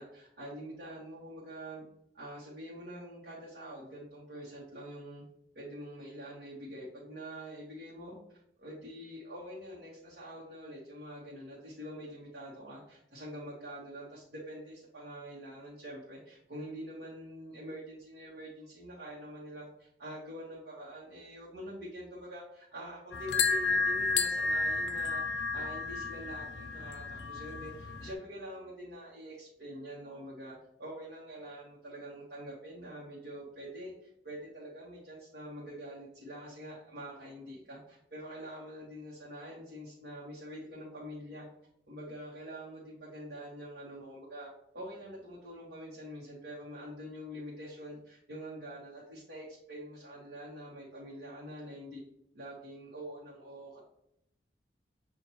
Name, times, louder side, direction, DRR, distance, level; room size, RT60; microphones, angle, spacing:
voice 1, 0.0-1.9 2.1-5.2 5.5-41.5 41.9-52.0 52.3-53.8, equal, 70° right, -7 dB, 1.1 m, -45 dB
sound 1, 23.1-28.1, left 4 dB, 75° left, 0.5 m, -32 dB
6.7 x 2.4 x 3.0 m, 0.75 s
head